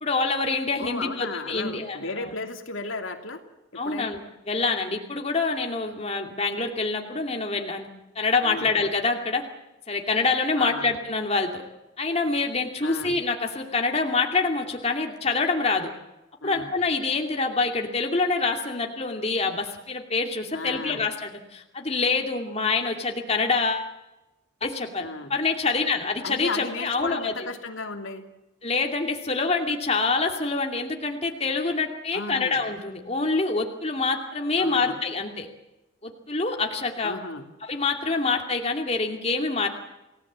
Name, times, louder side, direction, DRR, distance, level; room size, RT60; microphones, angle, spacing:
voice 1, 0.0-2.0 2.2-2.3 3.8-4.2 4.5-7.9 8.2-9.4 9.9-11.6 12.0-15.9 16.4-23.9 24.6-27.3 28.6-35.5 36.0-37.2 37.6-39.7, left 3 dB, 30° left, 3 dB, 2.5 m, -26 dB
voice 2, 0.8-3.4 3.7-4.1 8.4-8.7 10.6-10.9 12.8-13.2 16.4-16.7 20.5-21.0 25.0-25.3 26.2-28.3 32.1-32.6 34.6-35.0 37.0-37.5, left 3 dB, 80° left, 4 dB, 2.8 m, -34 dB
29.0 x 18.0 x 7.5 m, 0.97 s
head